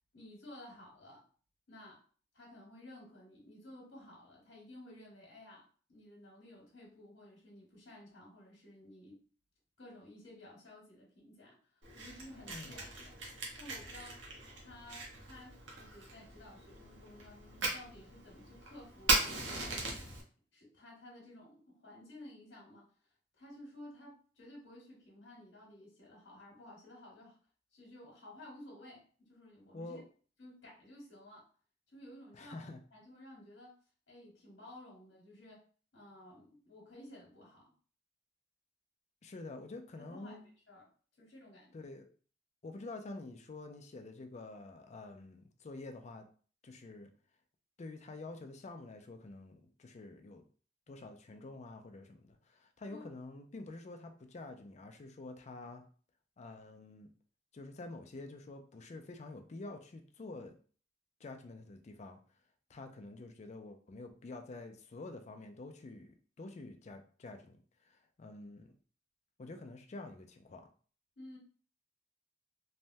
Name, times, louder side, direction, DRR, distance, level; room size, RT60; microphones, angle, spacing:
voice 1, 0.1-1.2 1.7-2.0 2.3-9.2 9.8-14.2 14.6-19.8 20.5-22.9 23.4-27.4 27.7-30.0 30.4-31.5 31.9-33.7 34.1-35.6 35.9-37.6 39.9-40.4 40.7-40.9 41.2-41.7 52.9-53.1 71.2-71.4, left 1 dB, 90° left, -3 dB, 1.1 m, -54 dB
Fire, 11.8-20.2, right 2 dB, 75° right, 0.8 m, -38 dB
voice 2, 29.7-30.0 32.3-32.8 39.2-40.4 41.7-42.1 42.6-46.3 46.6-47.1 47.8-50.4 50.9-55.8 56.4-57.1 57.5-60.5 61.2-62.2 62.7-68.7 69.4-70.7, left 2 dB, 40° left, 5 dB, 0.4 m, -48 dB
3.2 x 2.1 x 2.6 m, 0.42 s
head